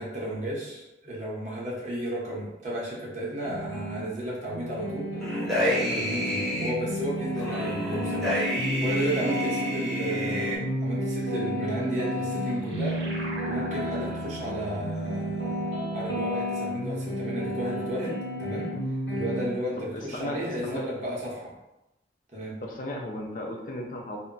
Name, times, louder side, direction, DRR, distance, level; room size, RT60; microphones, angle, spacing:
voice 1, 0.0-18.7 19.1-21.5 22.3-22.6, equal, 40° right, -5 dB, 0.8 m, -33 dB
sound 1, 3.4-4.0 4.5-19.4, equal, 85° left, 0.9 m, -32 dB
sound 2, 5.2-6.7 7.4-10.6, equal, ahead, 0.6 m, -29 dB
sound 3, 11.8-16.8, right 2 dB, 75° right, 0.7 m, -44 dB
voice 2, 19.8-20.8 22.6-24.2, left 1 dB, 45° left, 0 dB, 0.4 m, -35 dB
2.1 x 2.1 x 3.8 m, 0.93 s
head